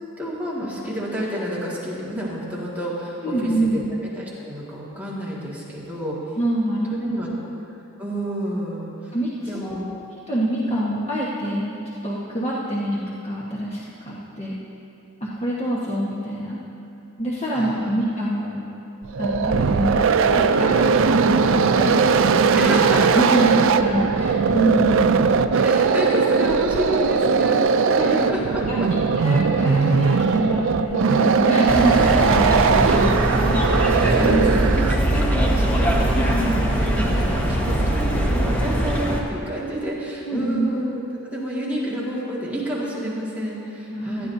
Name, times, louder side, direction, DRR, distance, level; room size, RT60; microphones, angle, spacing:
voice 1, 0.2-3.8 4.1-6.2 7.0-7.3 8.0-8.9 9.5-9.9 17.5-17.9 22.5-23.2 25.5-28.9 33.3-33.4 33.7-37.3 37.6-44.3, equal, 5° right, -7 dB, 2.0 m, -29 dB
voice 2, 3.2-3.9 6.4-7.3 9.1-9.9 10.3-14.6 15.2-16.6 17.2-18.6 19.2-22.0 22.5-22.9 23.1-25.1 28.0-28.1 28.7-28.8 29.2-33.6 34.2-34.5 36.1-36.5 40.3-40.7 43.9-44.3, right 1 dB, 30° left, -7 dB, 1.3 m, -25 dB
sound 1, 19.0-35.1, right 5 dB, 65° right, 0.4 m, -19 dB
sound 2, 31.7-39.2, right 1 dB, 10° left, 1.2 m, -21 dB
18.0 x 13.5 x 2.7 m, 2.8 s
head